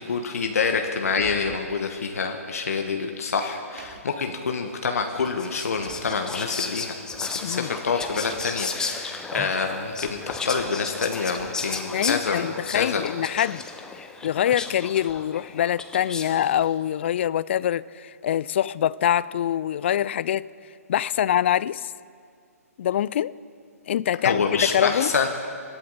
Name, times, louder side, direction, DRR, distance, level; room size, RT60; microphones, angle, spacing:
voice 1, 0.0-6.9 7.3-12.5 12.7-13.0 24.2-25.3, left 5 dB, 65° left, 4 dB, 1.2 m, -27 dB
Car, 1.0-1.7 2.8-2.9 3.6-4.2 5.5-6.2 8.0-8.8, right 6 dB, 40° right, 1.7 m, -44 dB
Whispering, 5.1-16.5, left 4 dB, 10° left, 0.8 m, -34 dB
voice 2, 11.9-13.6 14.2-20.5 20.9-21.9 22.8-23.3 23.9-25.1, left 10 dB, 45° left, 20 dB, 0.4 m, -24 dB
26.0 x 11.5 x 4.0 m, 2.3 s
figure-of-eight pair, 130°, 8 cm